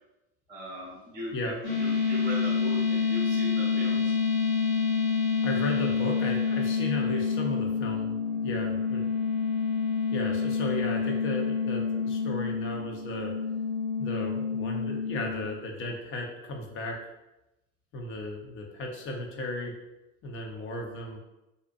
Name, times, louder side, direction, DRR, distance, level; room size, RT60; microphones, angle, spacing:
voice 1, 0.5-4.2, equal, 20° right, -4 dB, 0.6 m, -39 dB
sound 1, 1.6-15.5, left 5 dB, 90° left, 0.9 m, -28 dB
voice 2, 5.4-8.1 8.4-9.2 10.1-13.3 14.0-17.1 17.9-19.7 20.2-21.2, left 1 dB, 30° left, 1 dB, 0.5 m, -35 dB
2.6 x 2.1 x 2.5 m, 0.96 s
figure-of-eight pair, 75°, 39 cm